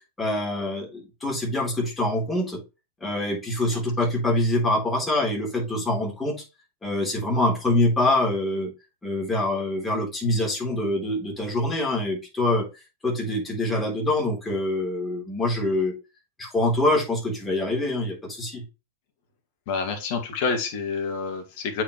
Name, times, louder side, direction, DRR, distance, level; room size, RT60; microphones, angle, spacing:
voice 1, 0.2-2.6 3.0-6.4 6.8-8.7 9.0-12.7 13.0-15.9 16.4-18.6, left 1 dB, 10° left, -1 dB, 3.6 m, -25 dB
voice 2, 19.7-21.8, left 5 dB, 50° left, 5 dB, 1.9 m, -28 dB
8.2 x 4.7 x 3.1 m, 0.27 s
figure-of-eight pair, 90°, 0 cm